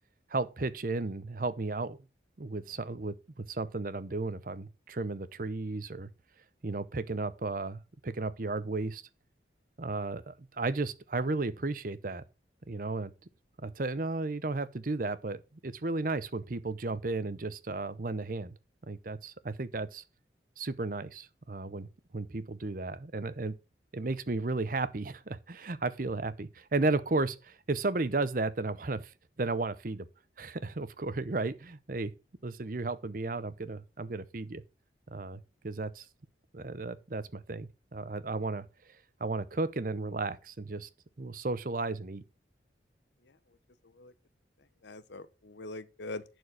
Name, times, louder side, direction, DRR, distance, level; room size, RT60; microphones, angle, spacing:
voice 1, 0.3-2.0 2.4-6.1 6.6-9.0 9.8-12.2 12.7-13.1 13.6-18.6 18.9-20.0 20.6-23.5 23.9-29.1 29.4-30.1 30.4-32.1 32.4-34.6 35.1-36.1 36.5-38.7 39.2-40.9 41.2-42.2, right 3 dB, 50° right, 0.7 m, -34 dB
voice 2, 43.2-43.6 43.8-44.1 44.6-46.2, left 2 dB, 75° left, 0.9 m, -44 dB
11.0 x 4.6 x 6.3 m
head